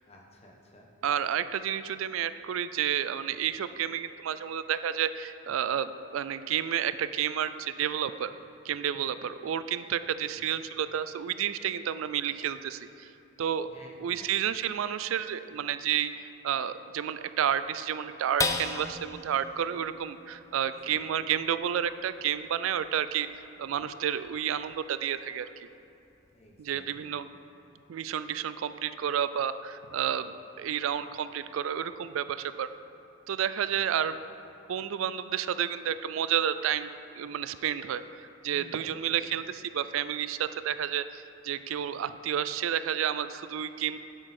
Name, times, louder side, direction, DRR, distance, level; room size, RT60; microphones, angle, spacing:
voice 1, 0.1-0.9 10.3-10.6 13.7-14.5 20.9-21.3 25.6-25.7 26.3-27.2 30.8-31.0 33.6-34.0 38.5-39.0, left 1 dB, 30° left, -1 dB, 1.1 m, -54 dB
voice 2, 1.0-8.3 8.7-13.1 13.4-13.7 14.0-16.1 16.4-23.3 23.6-25.7 26.6-27.2 27.9-32.7 33.3-34.1 34.7-36.9 37.2-44.0, right 9 dB, 85° right, 13 dB, 0.3 m, -30 dB
sound 1, 18.4-25.1 25.6-25.7 26.1-26.6, left 3 dB, 15° left, 0.4 m, -38 dB
9.9 x 7.9 x 4.3 m, 2.9 s
head